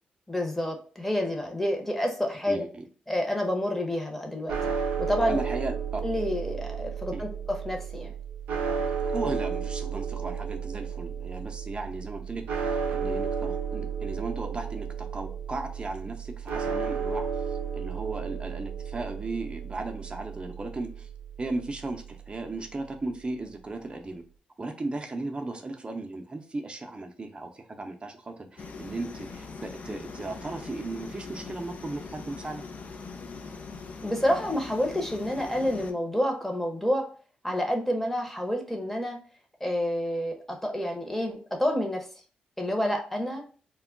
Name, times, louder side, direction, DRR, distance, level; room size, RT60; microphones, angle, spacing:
voice 1, 0.3-2.6 3.1-4.5 5.0-5.4 6.0-8.1 34.0-37.1 37.4-39.2 39.6-42.1 42.6-43.4, left 1 dB, 10° left, 2 dB, 0.8 m, -28 dB
voice 2, 2.5-2.8 5.3-6.0 7.1-7.2 9.0-17.3 17.7-21.1 21.4-24.2 24.6-32.6, right 2 dB, 35° right, 4 dB, 0.6 m, -36 dB
sound 1, 4.5-22.7, right 6 dB, 85° right, 0.5 m, -33 dB
sound 2, 28.6-35.9, left 4 dB, 55° left, 0.4 m, -41 dB
2.2 x 2.0 x 3.7 m, 0.41 s
supercardioid pair, 50°, 3 cm